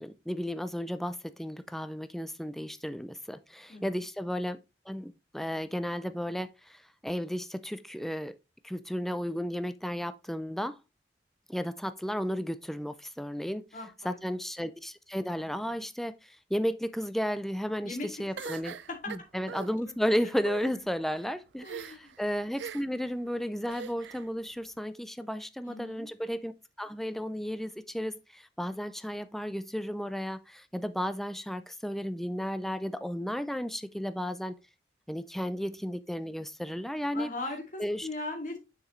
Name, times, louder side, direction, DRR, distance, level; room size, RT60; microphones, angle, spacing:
voice 1, 0.0-4.6 4.9-8.3 8.6-10.8 11.5-13.6 14.0-18.8 19.1-34.5 35.1-37.3 37.8-38.1, equal, ahead, 0.4 m, -33 dB
voice 2, 3.7-4.0 13.7-14.2 17.8-18.1 18.9-19.0 21.6-22.1 25.7-26.1 37.1-38.6, left 2 dB, 45° left, 2.3 m, -39 dB
sound 1, 18.4-19.7 20.4-20.7 21.6-22.1 22.6-23.0 23.7-24.3, right 7 dB, 90° right, 0.4 m, -41 dB
6.9 x 6.0 x 3.1 m
head